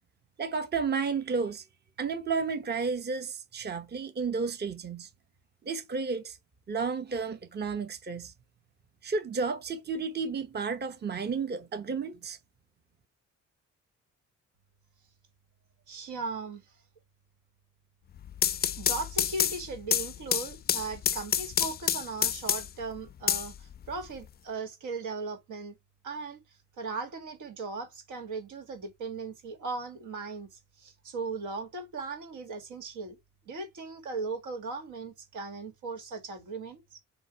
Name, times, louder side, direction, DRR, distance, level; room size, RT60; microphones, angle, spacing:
voice 1, 0.4-1.6 2.0-5.1 5.6-6.4 6.7-8.3 9.0-12.4, right 5 dB, 35° right, 0.9 m, -32 dB
voice 2, 15.9-16.7 18.8-25.7 26.0-33.2 33.5-37.0, right 4 dB, 80° right, 2.3 m, -38 dB
sound 1, 18.2-22.8 23.3-24.2, left 9 dB, 35° left, 0.4 m, -28 dB
7.2 x 2.9 x 4.5 m
cardioid pair, 90°, 30 cm